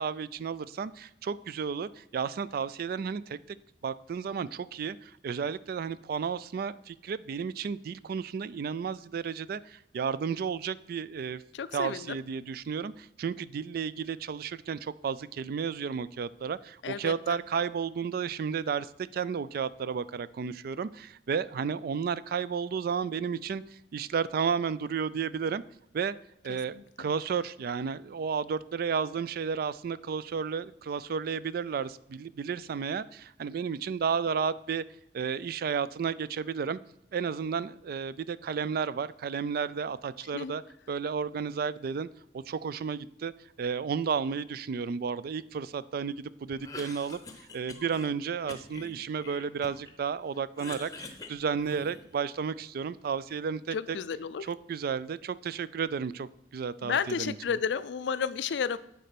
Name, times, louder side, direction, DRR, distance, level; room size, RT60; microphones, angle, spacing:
voice 1, 0.0-3.6 3.8-11.4 11.7-23.6 23.9-25.6 25.9-26.2 26.4-34.8 35.1-36.8 37.1-40.6 40.9-42.1 42.3-43.3 43.6-47.2 47.5-54.0 54.5-57.4, right 6 dB, 55° right, 18 dB, 0.3 m, -32 dB
voice 2, 11.5-12.2 16.8-17.4 26.5-27.1 40.3-40.5 53.7-54.5 56.8-58.8, left 6 dB, 80° left, 16 dB, 0.4 m, -32 dB
Cough, 46.5-48.1 48.5-50.0 50.3-52.2, left 3 dB, 20° left, 0.7 m, -45 dB
8.3 x 4.4 x 5.8 m, 0.80 s
head